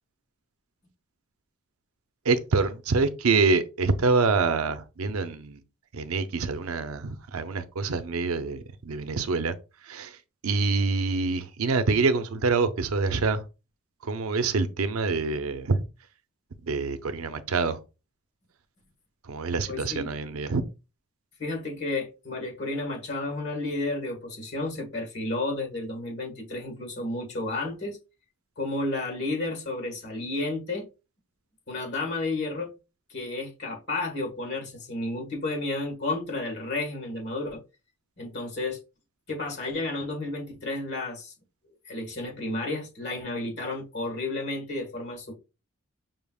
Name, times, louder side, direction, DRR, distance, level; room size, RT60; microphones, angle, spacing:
voice 1, 2.2-5.6 5.9-9.5 9.8-10.2 10.4-13.4 14.0-15.8 16.6-17.8 19.2-20.6, right 4 dB, 75° right, 0.5 m, -26 dB
voice 2, 19.7-20.1 21.4-28.0 28.6-30.9 31.7-32.7 33.1-37.6 38.2-38.8 39.3-41.3 41.8-45.3, left 2 dB, 50° left, 1.7 m, -32 dB
5.6 x 3.5 x 2.3 m
head